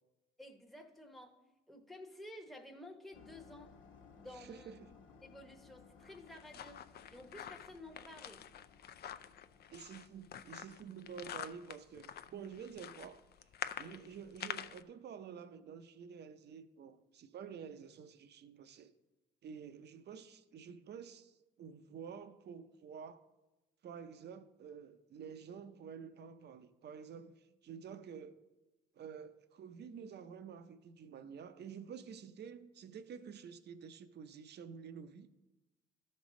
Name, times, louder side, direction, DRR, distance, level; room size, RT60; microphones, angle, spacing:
voice 1, 0.4-1.4 1.7-3.7 4.2-4.9 5.2-8.4, left 1 dB, ahead, 3 dB, 0.9 m, -53 dB
sound 1, 3.1-10.7, left 5 dB, 80° left, 1.2 m, -61 dB
voice 2, 4.3-4.9 9.1-9.2 9.7-13.2 13.8-18.9 19.4-23.2 23.8-28.4 29.0-35.4, right 7 dB, 55° right, 11 dB, 0.6 m, -50 dB
sound 2, 6.0-14.8, left 9 dB, 55° left, 0.4 m, -47 dB
13.0 x 5.4 x 3.8 m, 1.0 s
cardioid pair, 90°, 20 cm